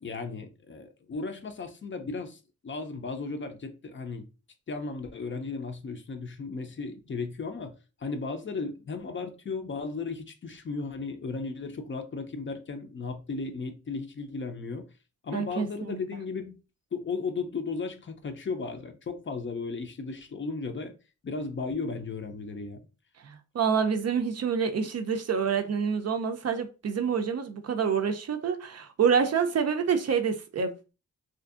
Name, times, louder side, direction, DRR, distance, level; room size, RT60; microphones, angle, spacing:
voice 1, 0.0-4.3 4.7-7.7 8.0-14.9 15.2-16.6 16.9-20.9 21.2-22.8, left 4 dB, 40° left, 0.5 m, -35 dB
voice 2, 15.3-16.0 23.2-30.9, right 6 dB, 55° right, 0.5 m, -27 dB
2.6 x 2.5 x 2.4 m
cardioid pair, 80°, 31 cm